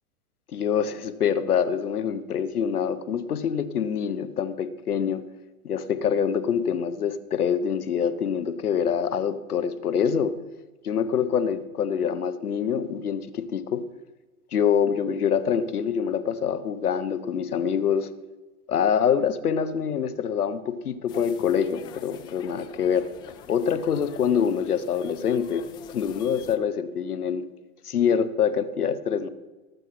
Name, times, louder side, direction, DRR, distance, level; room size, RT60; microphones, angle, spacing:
voice 1, 0.5-5.2 5.6-10.4 10.8-13.9 14.5-18.1 18.7-23.1 23.5-27.5 27.8-29.3, left 7 dB, 85° left, 12 dB, 1.2 m, -25 dB
sound 1, 21.1-26.6, left 9 dB, 10° left, 0.3 m, -45 dB
18.5 x 7.3 x 5.9 m, 1.2 s
hypercardioid pair, 115°, 44 cm